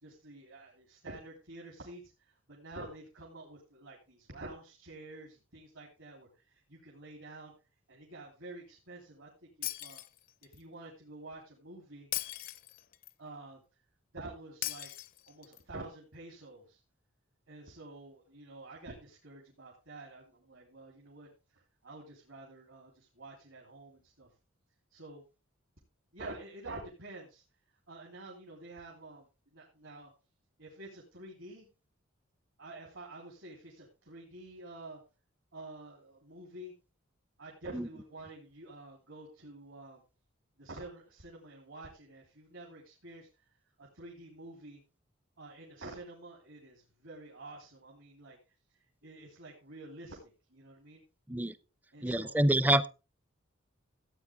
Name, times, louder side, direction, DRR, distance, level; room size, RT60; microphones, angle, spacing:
voice 1, 0.0-7.5 7.9-10.0 10.4-12.1 13.2-13.6 14.1-14.9 15.3-16.8 17.5-24.3 24.9-25.2 26.1-27.4 27.9-30.1 30.6-31.7 32.6-35.0 35.5-36.7 37.4-40.0 40.6-43.3 43.8-44.8 45.4-48.4 49.0-50.2 50.5-51.0 51.9-52.4, right 2 dB, 70° right, -2 dB, 3.1 m, -49 dB
Shatter, 9.6-10.6 12.1-13.1 14.6-15.6, left 14 dB, 45° left, 0.5 m, -39 dB
voice 2, 52.0-52.9, right 1 dB, 10° right, 17 dB, 0.4 m, -27 dB
14.5 x 8.5 x 3.5 m, 0.30 s
head